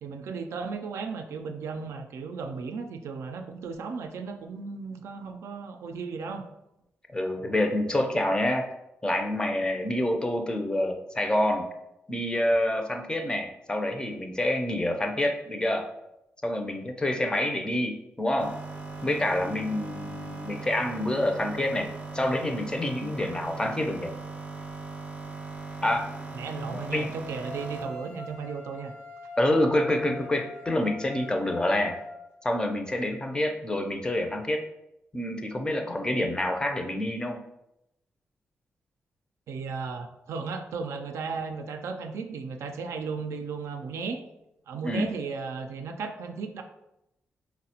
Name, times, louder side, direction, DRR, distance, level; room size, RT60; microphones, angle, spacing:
voice 1, 0.0-6.4 26.3-28.9 39.5-44.2 44.7-46.6, right 5 dB, 80° right, 5 dB, 0.3 m, -35 dB
voice 2, 7.1-8.7 9.0-11.7 12.1-15.9 16.4-18.6 19.0-24.1 25.8-26.1 26.7-27.1 29.4-32.0 32.4-34.6 35.1-37.4 44.8-45.1, left 1 dB, 20° left, 4 dB, 0.4 m, -27 dB
sound 1, 18.4-28.0, right 3 dB, 25° right, 0.6 m, -39 dB
sound 2, 26.5-32.3, left 2 dB, 80° left, 0.6 m, -43 dB
3.9 x 2.1 x 2.8 m, 0.87 s
cardioid pair, 85°, 5 cm